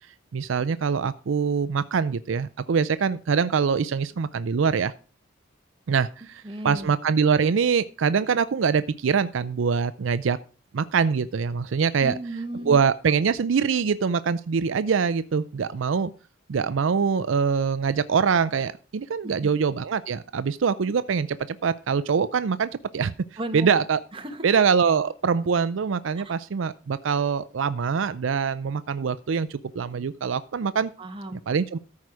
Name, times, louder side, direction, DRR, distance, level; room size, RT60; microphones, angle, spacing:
voice 1, 0.3-4.9 5.9-10.4 10.7-12.1 12.7-16.1 16.5-23.1 23.5-24.0 24.4-30.9 31.3-31.8, right 6 dB, 75° right, 15 dB, 0.5 m, -24 dB
voice 2, 6.4-6.9 12.0-12.8 19.2-19.5 23.4-23.7 24.1-24.4 26.2-26.3 31.0-31.4, right 1 dB, 25° right, 6 dB, 1.4 m, -35 dB
13.5 x 4.8 x 6.2 m, 0.36 s
head